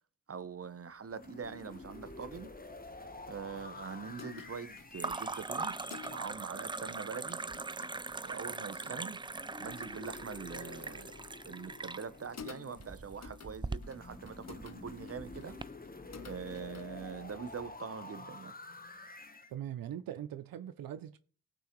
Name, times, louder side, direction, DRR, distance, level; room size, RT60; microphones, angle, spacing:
voice 1, 0.3-2.5 3.3-5.8 6.1-7.4 8.2-9.2 9.6-11.1 11.5-15.6 16.2-18.6, right 6 dB, 45° right, 0.9 m, -43 dB
sound 1, 1.1-6.2 9.3-13.1 13.8-19.5, left 3 dB, 25° left, 1.1 m, -49 dB
sound 2, 1.8-2.6 2.9-3.5 5.0-15.6, right 3 dB, 15° right, 0.3 m, -41 dB
sound 3, 2.9-16.9, left 7 dB, 50° left, 0.8 m, -55 dB
voice 2, 19.5-21.2, right 11 dB, 85° right, 0.5 m, -41 dB
16.0 x 6.1 x 3.1 m
cardioid pair, 50°, 34 cm